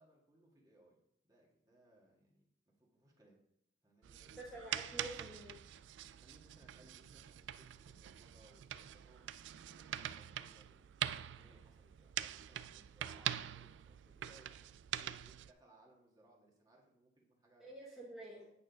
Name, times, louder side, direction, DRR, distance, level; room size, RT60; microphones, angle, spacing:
voice 1, 0.0-2.5 2.8-3.4 3.8-4.3 4.8-5.0 6.1-17.7, right 1 dB, 20° right, -2 dB, 1.7 m, -67 dB
sound 1, 4.0-15.5, right 11 dB, 75° right, 0.3 m, -44 dB
voice 2, 4.4-5.6 17.6-18.5, right 1 dB, ahead, -6 dB, 1.3 m, -49 dB
8.8 x 4.4 x 5.1 m, 0.74 s
head